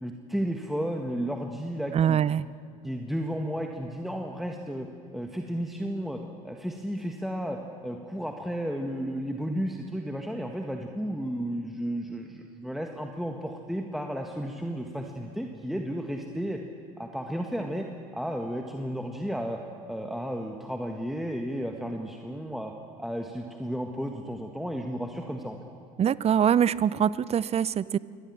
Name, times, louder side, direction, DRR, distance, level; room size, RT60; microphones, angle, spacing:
voice 1, 0.0-2.2 2.8-4.9 5.1-6.2 6.4-16.6 17.0-17.9 18.1-19.6 19.9-22.7 23.0-25.6, equal, ahead, 3 dB, 1.7 m, -33 dB
voice 2, 1.9-2.4 26.0-28.0, right 9 dB, 35° right, 20 dB, 0.6 m, -23 dB
24.0 x 18.5 x 7.5 m, 2.3 s
hypercardioid pair, 70°, 19 cm